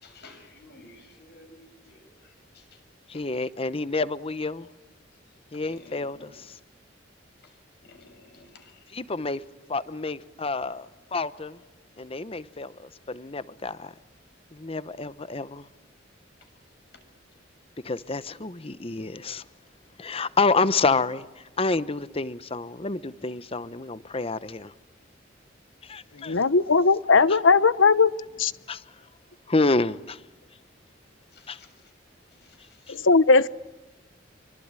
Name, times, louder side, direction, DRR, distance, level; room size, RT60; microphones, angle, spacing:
voice 1, 0.0-2.0 3.1-3.2 5.8-6.3 7.8-8.7 31.3-31.7, left 2 dB, 60° left, 6.9 m, -51 dB
voice 2, 3.1-4.7 5.5-6.5 8.9-9.4 9.7-10.9 11.1-11.6 12.0-13.9 14.5-15.6 17.8-19.4 20.0-21.3 21.6-24.7 25.8-26.4 27.3-27.4 28.7-28.8 29.5-30.2 31.5-31.6 32.9-33.0, left 3 dB, 30° left, 0.9 m, -28 dB
voice 3, 26.2-28.1 28.4-28.5 32.9-33.5, left 4 dB, 90° left, 0.9 m, -18 dB
26.5 x 24.5 x 9.0 m
head